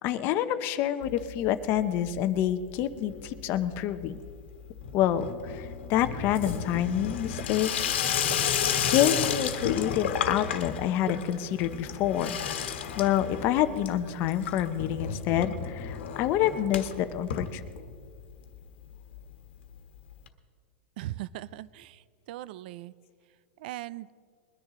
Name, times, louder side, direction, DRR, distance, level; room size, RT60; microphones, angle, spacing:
voice 1, 0.0-4.2 4.9-7.7 8.0-8.2 8.9-12.4 13.0-17.6, left 11 dB, 35° left, 11 dB, 0.7 m, -27 dB
Water tap faucet / Sink (filling or washing), 1.0-1.8 2.1-2.6 2.9-18.2 18.5-18.6 18.8-18.9 19.1-19.2 20.3-20.4, left 8 dB, 85° left, 1.3 m, -32 dB
sound 1, 6.4-6.5 7.4-7.5 8.3-8.4 9.2-9.3 10.1-10.2 11.0-11.1, right 8 dB, 45° right, 0.8 m, -38 dB
voice 2, 21.0-22.9 23.6-24.1, right 15 dB, 60° right, 20 dB, 0.4 m, -39 dB
21.5 x 10.5 x 3.7 m, 2.1 s
supercardioid pair, 155°, 6 cm